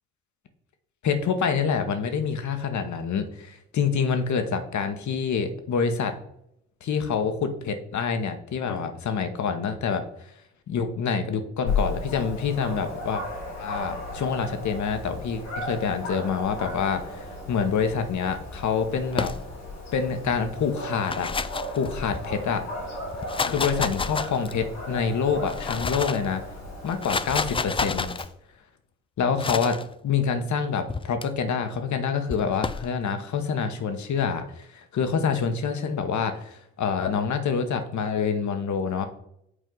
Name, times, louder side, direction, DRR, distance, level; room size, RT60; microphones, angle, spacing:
voice 1, 1.0-6.1 6.8-10.0 10.7-13.2 13.6-19.3 19.9-21.3 21.7-22.6 23.5-26.4 26.8-28.1 29.2-29.8 30.0-39.1, left 6 dB, 50° left, 8 dB, 1.1 m, -26 dB
Dog, 11.7-28.2, left 2 dB, 85° left, 2.1 m, -35 dB
sound 1, 19.1-19.8 20.8-22.4 23.1-24.7 25.3-26.3 26.9-28.3 29.4-29.8 30.9-31.3 32.3-32.9, left 4 dB, 15° left, 0.4 m, -30 dB
8.1 x 4.3 x 3.9 m, 0.75 s
hypercardioid pair, 45°, 36 cm